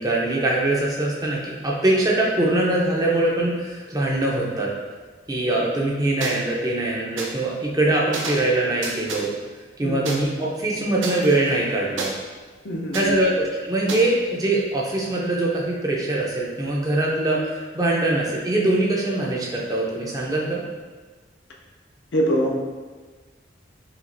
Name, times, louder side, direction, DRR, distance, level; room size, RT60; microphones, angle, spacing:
voice 1, 0.0-4.7 5.3-9.3 9.8-12.1 12.9-20.6, right 2 dB, 20° right, -3 dB, 0.5 m, -22 dB
sound 1, 6.2-6.3 7.2-7.3 8.1-8.5 8.8-9.3 10.1-10.2 11.0-12.1 12.9-13.1 13.9-14.0, right 3 dB, 85° right, 0.6 m, -31 dB
voice 2, 12.6-13.2 22.1-22.6, equal, 70° left, -1 dB, 0.6 m, -23 dB
5.8 x 2.4 x 2.6 m, 1.4 s
head